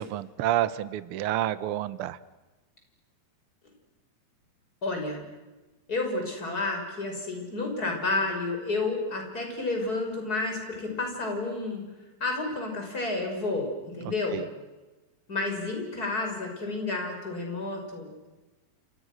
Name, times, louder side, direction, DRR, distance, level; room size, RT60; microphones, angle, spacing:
voice 1, 0.0-2.2 14.3-14.5, right 12 dB, 85° right, 15 dB, 1.2 m, -29 dB
voice 2, 4.8-5.2 5.9-11.8 12.2-14.4 15.3-18.3, left 2 dB, 25° left, 2 dB, 6.6 m, -30 dB
29.5 x 27.0 x 6.4 m, 1.1 s
omnidirectional pair, 3.9 m